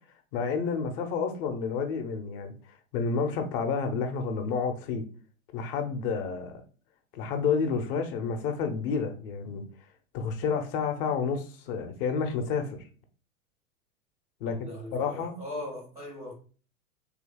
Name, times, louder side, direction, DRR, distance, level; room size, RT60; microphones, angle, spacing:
voice 1, 0.3-2.5 2.9-5.0 5.5-6.6 7.1-9.6 10.1-12.9 14.4-15.4, left 5 dB, 40° left, 0.8 m, -30 dB
voice 2, 14.4-16.3, left 2 dB, 5° right, 0.3 m, -39 dB
3.5 x 2.7 x 3.8 m
figure-of-eight pair, 90°, 42 cm